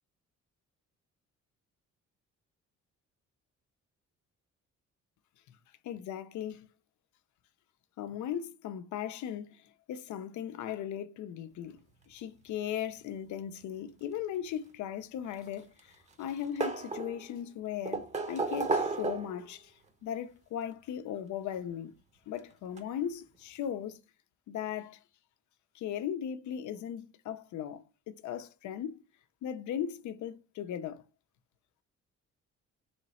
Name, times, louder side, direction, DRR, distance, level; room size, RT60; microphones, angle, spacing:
voice 1, 5.8-6.7 8.0-11.8 12.1-21.9 22.3-24.0 24.5-25.0 25.7-29.0 29.4-31.0, left 9 dB, 70° left, 0.5 m, -38 dB
sound 1, 15.2-15.9 16.2-17.3 17.9-19.5 20.7-20.8 22.3-22.4 22.8-22.9, right 3 dB, 25° right, 0.7 m, -33 dB
3.2 x 3.0 x 4.1 m
cardioid pair, 90°, 30 cm